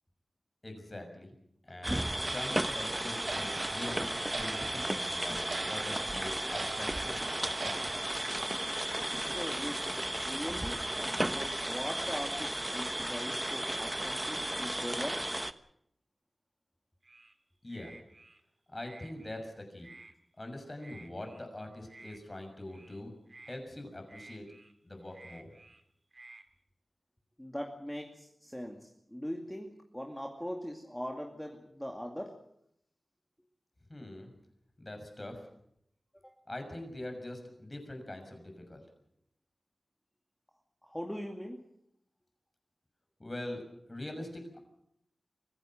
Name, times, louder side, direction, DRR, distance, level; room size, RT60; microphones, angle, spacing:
voice 1, 0.6-1.3 1.6-8.0 17.6-17.9 18.7-19.9 20.4-23.1 23.5-24.5 24.8-25.5 33.9-34.3 34.8-35.5 36.5-38.8 43.2-44.6, left 1 dB, 30° left, 5 dB, 6.4 m, -43 dB
sound 1, 1.8-15.5, right 1 dB, 15° right, 1.0 m, -34 dB
Clock, 2.2-9.4 9.7-9.9 10.4-10.5 10.9-11.0 11.5-11.6 12.1-12.2 12.7-12.9, right 3 dB, 80° right, 2.7 m, -43 dB
voice 2, 9.3-15.2 27.4-32.4 36.2-36.3 40.8-41.6, equal, 5° left, 1 dB, 2.4 m, -41 dB
sound 2, 17.0-17.3 17.7-18.4 18.8-19.5 19.8-20.1 20.8-21.5 21.9-22.2 22.7-23.0 23.3-23.6 24.1-24.7 25.1-25.8 26.1-26.4, right 3 dB, 50° right, 2.2 m, -54 dB
24.0 x 15.5 x 7.8 m, 0.74 s
wide cardioid pair, 65°, 0 cm